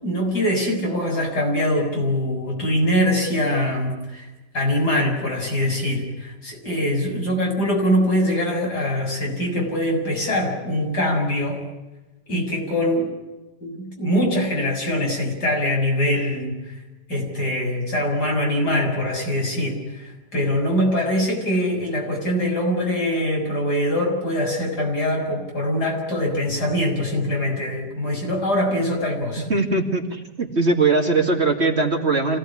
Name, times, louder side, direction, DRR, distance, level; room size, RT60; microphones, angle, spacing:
voice 1, 0.0-4.3 4.5-11.6 12.3-13.1 13.6-16.6 17.1-29.5, left 1 dB, 65° left, 0 dB, 7.4 m, -23 dB
voice 2, 29.5-32.4, right 3 dB, 40° right, 3 dB, 2.7 m, -20 dB
26.5 x 18.0 x 9.9 m, 1.1 s
omnidirectional pair, 1.9 m